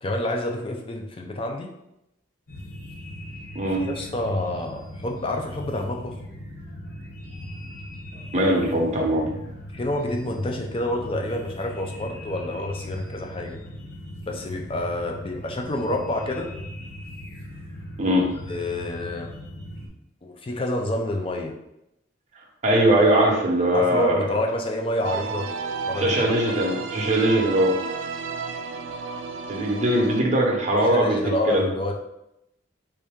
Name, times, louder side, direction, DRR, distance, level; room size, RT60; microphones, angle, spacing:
voice 1, 0.0-1.7 3.8-6.1 9.7-13.6 14.3-16.5 18.5-19.3 20.2-21.5 23.7-25.5 25.9-26.3 30.8-31.9, left 1 dB, 30° left, 2 dB, 0.5 m, -28 dB
sound 1, 2.5-19.9, equal, 50° left, 0.9 m, -39 dB
voice 2, 8.3-9.3 18.0-18.3 22.6-24.3 26.0-27.8 29.5-31.2 31.5-31.6, right 1 dB, 35° right, -2 dB, 0.8 m, -21 dB
sound 2, 25.0-30.2, right 5 dB, 75° right, 0.3 m, -32 dB
3.4 x 2.7 x 3.6 m, 0.85 s
head